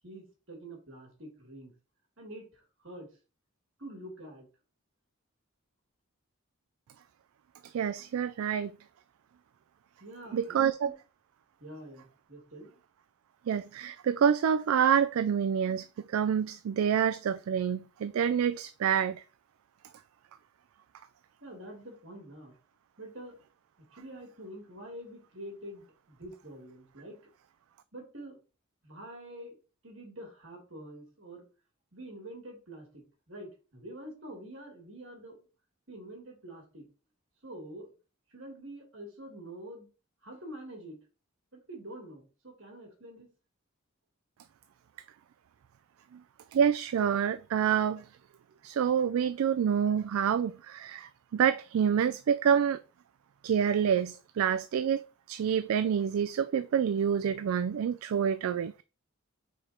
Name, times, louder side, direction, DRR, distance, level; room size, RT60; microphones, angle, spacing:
voice 1, 0.0-1.7 2.2-3.1 3.8-4.5 10.0-10.7 11.6-12.7 21.4-22.5 23.0-23.4 23.8-27.2 27.9-28.4 28.8-29.6 29.8-31.4 31.9-35.5 35.9-36.9 37.4-37.9 38.3-39.9 40.2-41.0 41.5-43.3, right 1 dB, 60° right, 2.6 m, -46 dB
voice 2, 7.6-8.7 10.3-10.9 13.5-19.2 46.1-46.2 46.5-48.1 48.6-52.8 53.4-55.0 55.3-58.8, right 8 dB, 80° right, 0.3 m, -27 dB
4.9 x 4.4 x 4.3 m
head